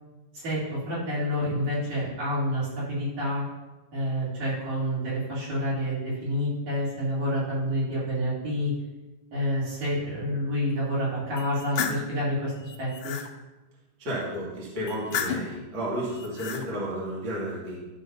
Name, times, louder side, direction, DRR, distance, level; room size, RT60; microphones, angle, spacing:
voice 1, 0.3-3.4 3.9-8.7 9.3-12.5 12.8-13.1, equal, 75° right, -9 dB, 4.6 m, -28 dB
sound 1, 11.4-12.1 12.6-13.3 14.9-15.6 16.1-16.6, left 7 dB, 75° left, 1.1 m, -32 dB
voice 2, 14.0-17.8, equal, 40° right, -7 dB, 2.8 m, -32 dB
12.0 x 6.6 x 2.8 m, 1.1 s
omnidirectional pair, 3.3 m